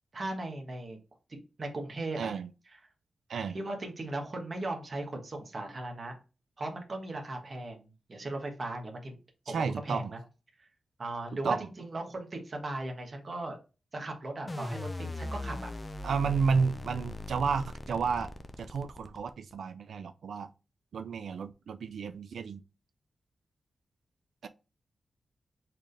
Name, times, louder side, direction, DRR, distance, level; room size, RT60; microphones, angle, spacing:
voice 1, 0.1-1.0 1.6-2.3 3.5-6.2 6.6-9.2 9.5-10.2 10.6-10.7 11.0-13.6 13.9-15.7, right 2 dB, 35° right, 1.3 m, -37 dB
voice 2, 2.2-2.5 3.3-3.6 9.5-10.1 11.4-11.7 16.0-18.3 18.6-20.5 20.9-22.6 24.4-24.5, right 5 dB, 85° right, 0.4 m, -31 dB
sound 1, 14.5-19.5, left 1 dB, 20° left, 0.5 m, -39 dB
4.4 x 3.6 x 3.3 m
wide cardioid pair, 155°, 0 cm